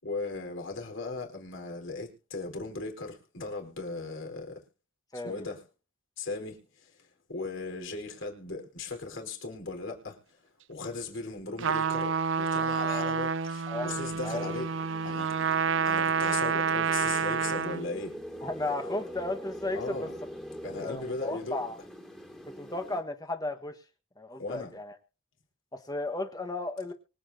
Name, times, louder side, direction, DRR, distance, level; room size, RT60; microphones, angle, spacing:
voice 1, 0.0-4.6 5.2-5.6 6.2-7.0 7.3-10.4 10.7-14.7 15.0-15.3 15.8-18.2 19.7-20.1 20.6-21.7 24.4-24.7, left 3 dB, 65° left, 4.4 m, -38 dB
voice 2, 5.1-5.4 12.8-13.1 13.7-14.6 18.4-20.1 20.8-21.8 22.6-23.8 24.2-24.9 25.7-26.9, left 2 dB, 20° left, 1.4 m, -35 dB
Trumpet, 11.6-17.9, right 6 dB, 60° right, 0.5 m, -28 dB
sound 1, 14.5-23.0, equal, ahead, 2.3 m, -43 dB
24.5 x 8.5 x 2.8 m
head